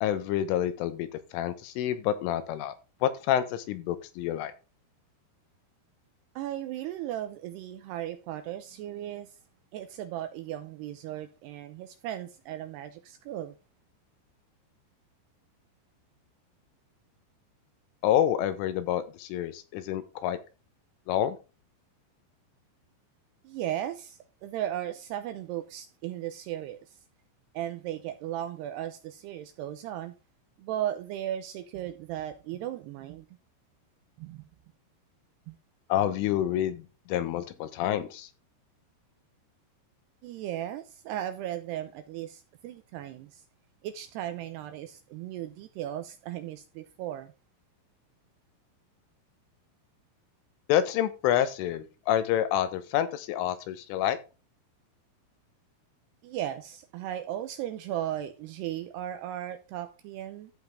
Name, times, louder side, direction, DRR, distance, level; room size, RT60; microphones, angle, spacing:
voice 1, 0.0-2.7 3.0-4.5 18.0-20.4 21.1-21.4 35.9-38.3 50.7-54.2, left 11 dB, 85° left, 3.6 m, -28 dB
voice 2, 6.4-9.4 9.7-13.5 23.4-27.0 27.5-30.1 30.6-33.3 34.2-34.4 35.5-35.6 40.2-43.4 43.8-47.3 56.2-60.5, right 12 dB, 85° right, 2.4 m, -36 dB
14.0 x 5.3 x 3.6 m
omnidirectional pair, 5.6 m